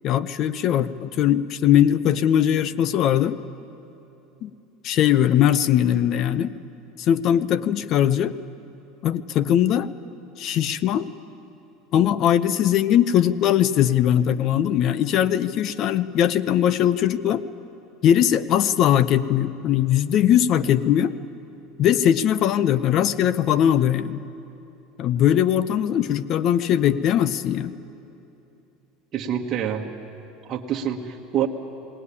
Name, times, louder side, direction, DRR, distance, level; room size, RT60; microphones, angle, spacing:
voice 1, 0.0-3.4 4.4-4.5 4.8-6.5 7.0-8.3 9.0-9.9 10.4-11.1 11.9-17.4 18.0-21.1 21.8-24.2 25.0-27.7, left 10 dB, 45° left, 16 dB, 0.6 m, -20 dB
voice 2, 29.1-29.9 30.5-31.5, right 9 dB, 35° right, 0 dB, 1.3 m, -26 dB
19.0 x 18.5 x 9.8 m, 2.8 s
supercardioid pair, 140°, 0 cm